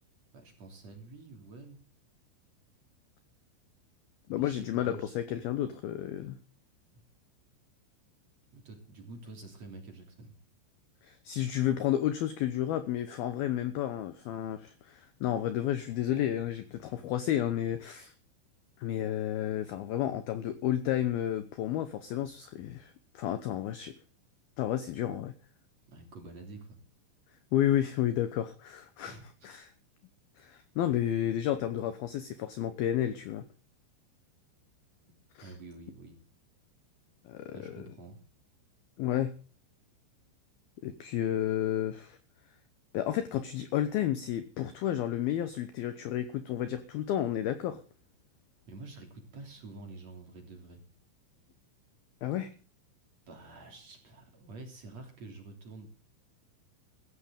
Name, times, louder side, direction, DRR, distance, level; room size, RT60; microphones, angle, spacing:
voice 1, 0.3-1.9 4.3-5.4 8.5-10.3 25.9-26.8 29.0-29.5 35.4-36.1 37.5-38.2 48.7-50.8 53.3-55.9, right 3 dB, 35° right, 3 dB, 3.8 m, -48 dB
voice 2, 4.3-6.4 11.0-18.1 18.8-23.9 24.6-25.3 27.5-29.2 29.4-29.7 30.4-33.4 35.4-35.5 37.3-37.9 39.0-39.3 40.8-42.2 42.9-47.8 52.2-52.5, left 11 dB, 80° left, 11 dB, 2.2 m, -31 dB
15.0 x 15.0 x 3.7 m, 0.40 s
omnidirectional pair, 5.7 m